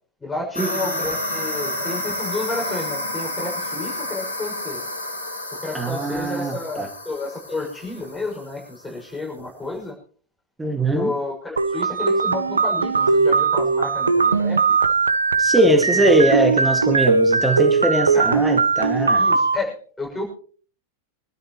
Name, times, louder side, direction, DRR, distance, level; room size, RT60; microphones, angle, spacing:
voice 1, 0.2-4.9 5.5-6.8 7.0-10.0 10.8-14.8 15.6-16.2 18.1-18.4 19.1-20.3, left 3 dB, 10° left, -1 dB, 6.4 m, -31 dB
sound 1, 0.5-8.7, left 1 dB, 80° left, 2.8 m, -30 dB
voice 2, 5.7-6.9 10.6-11.1 15.4-19.2, right 1 dB, 10° right, 4 dB, 2.0 m, -21 dB
sound 2, 11.6-19.6, right 4 dB, 75° right, 0.7 m, -19 dB
25.0 x 12.5 x 3.1 m, 0.43 s
figure-of-eight pair, 90°, 0 cm